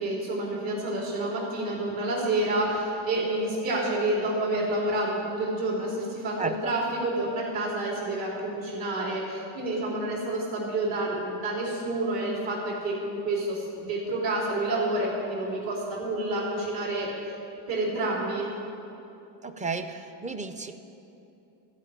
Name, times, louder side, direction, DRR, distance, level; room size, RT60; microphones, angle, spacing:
voice 1, 0.0-17.3 17.7-18.5, right 2 dB, 65° right, -4 dB, 3.0 m, -29 dB
voice 2, 6.4-6.8 19.4-20.8, right 3 dB, 15° right, 8 dB, 0.5 m, -33 dB
13.0 x 5.1 x 8.5 m, 2.9 s
supercardioid pair, 95°, 48 cm